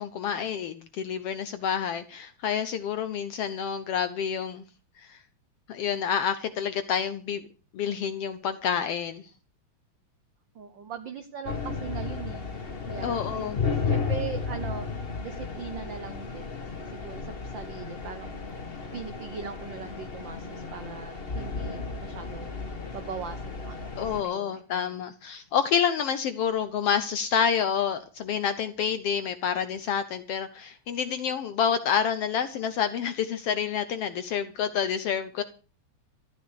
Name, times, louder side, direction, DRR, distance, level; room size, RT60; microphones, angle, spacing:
voice 1, 0.0-4.6 5.0-5.2 5.7-7.4 7.7-9.2 13.0-13.6 24.0-35.4, left 7 dB, 70° left, 1.5 m, -28 dB
voice 2, 10.5-14.9 15.2-16.6 16.9-18.3 18.9-24.9, right 6 dB, 65° right, 1.1 m, -40 dB
sound 1, 11.4-24.2, left 5 dB, 40° left, 0.8 m, -34 dB
13.5 x 9.8 x 6.5 m
omnidirectional pair, 3.5 m